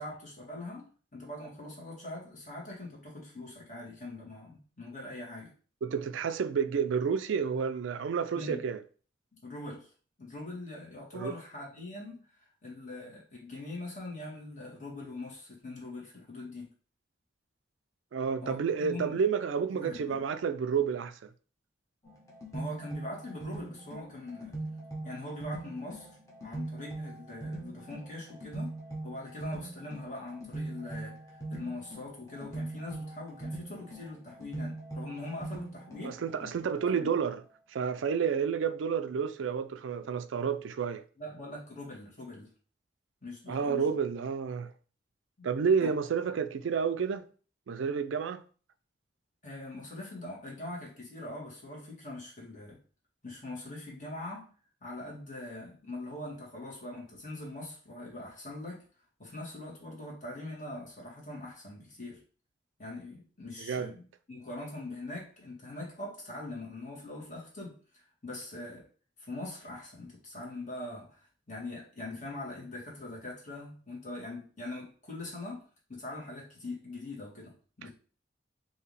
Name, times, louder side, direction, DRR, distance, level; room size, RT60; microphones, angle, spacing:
voice 1, 0.0-5.5 8.3-8.6 9.4-9.9 10.2-16.7 18.4-19.2 19.7-20.2 22.5-24.6 25.0-26.1 26.4-28.8 29.0-36.2 36.9-37.1 41.2-42.5 43.2-43.9 45.4-45.5 45.8-46.1 49.4-52.8 53.2-54.5 54.8-58.9 59.2-62.2 62.8-68.9 69.2-77.9, left 2 dB, 40° left, 1.9 m, -42 dB
voice 2, 5.8-8.8 11.1-11.3 18.1-21.3 36.0-37.4 37.7-41.0 43.5-44.7 45.4-47.2 47.7-48.4 63.6-63.9, right 6 dB, 90° right, 0.4 m, -30 dB
sound 1, 22.0-36.9, right 2 dB, 20° left, 1.2 m, -41 dB
4.6 x 2.8 x 3.2 m
head